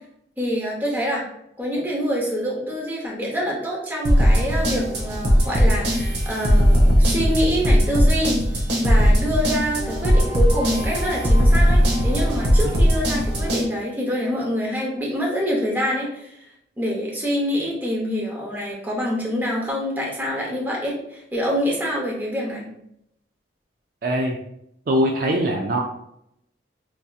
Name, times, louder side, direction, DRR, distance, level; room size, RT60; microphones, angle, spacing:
voice 1, 0.4-1.2 1.6-8.4 8.8-16.4 16.8-22.7, equal, 10° right, -3 dB, 0.8 m, -26 dB
sound 1, 4.0-13.6, equal, 70° right, 0.8 m, -18 dB
voice 2, 24.0-24.4 24.9-25.8, right 1 dB, 50° right, 1 dB, 0.4 m, -21 dB
4.5 x 2.7 x 2.3 m, 0.78 s
head